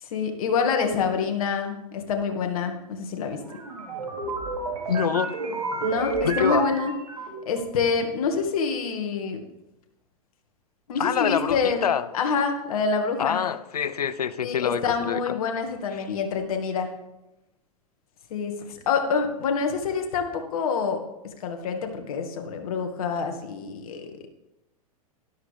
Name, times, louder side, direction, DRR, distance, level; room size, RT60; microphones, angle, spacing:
voice 1, 0.0-3.6 5.8-6.9 7.5-9.4 10.9-11.9 12.1-13.4 14.4-16.9 18.3-21.0 21.4-24.1, left 5 dB, 70° left, 2.1 m, -27 dB
sound 1, 3.4-7.6, right 3 dB, 85° right, 3.6 m, -30 dB
voice 2, 4.9-5.3 6.2-6.7 11.0-12.1 13.2-15.3, left 8 dB, 90° left, 0.7 m, -26 dB
12.5 x 12.0 x 3.5 m
hypercardioid pair, 105°, 19 cm